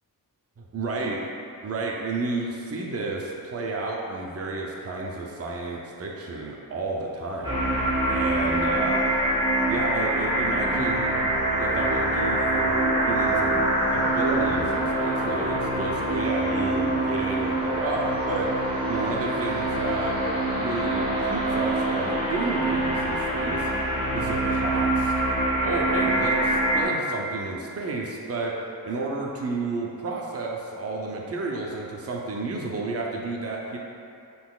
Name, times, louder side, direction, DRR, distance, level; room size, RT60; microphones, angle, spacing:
voice 1, 0.6-1.2 1.6-7.6 8.1-9.1 9.7-11.2 11.5-13.6 13.9-18.5 18.9-20.2 20.6-23.7 24.1-25.1 25.6-33.8, right 3 dB, 40° right, -2 dB, 0.6 m, -31 dB
sound 1, 7.4-26.8, right 1 dB, 15° right, 1.0 m, -25 dB
5.6 x 4.0 x 2.4 m, 2.5 s
wide cardioid pair, 135°, 37 cm